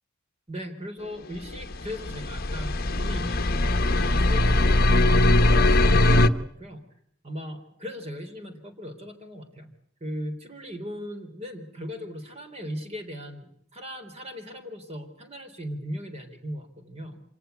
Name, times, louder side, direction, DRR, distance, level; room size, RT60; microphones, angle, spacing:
voice 1, 0.5-6.1 6.4-6.8 7.2-9.7 10.0-17.2, equal, 30° right, 6 dB, 3.8 m, -38 dB
sound 1, 1.5-6.3, left 1 dB, 45° left, 1.1 m, -20 dB
26.5 x 18.0 x 8.2 m, 0.72 s
head